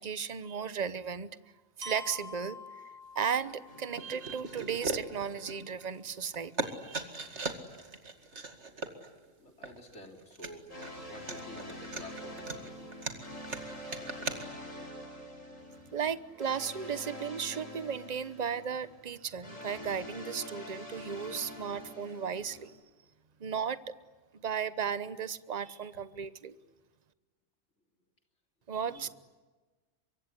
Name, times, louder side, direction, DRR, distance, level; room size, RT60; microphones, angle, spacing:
voice 1, 0.0-1.4 1.8-2.6 3.1-7.0 15.9-22.7 23.4-23.8 24.3-26.6 28.7-29.1, right 7 dB, 35° right, 15 dB, 1.0 m, -35 dB
Glockenspiel, 1.8-5.8, left 2 dB, 80° right, 2.8 m, -48 dB
sound 1, 3.4-3.6 4.0-6.1 6.3-14.4, right 3 dB, 60° right, 2.4 m, -39 dB
sound 2, 3.7-4.8 10.7-22.7, left 1 dB, 80° left, 7.1 m, -45 dB
voice 2, 9.2-10.7 11.0-12.9 28.8-29.1, left 1 dB, 60° left, 4 dB, 3.6 m, -50 dB
25.0 x 23.5 x 9.8 m, 1.3 s
omnidirectional pair, 1.3 m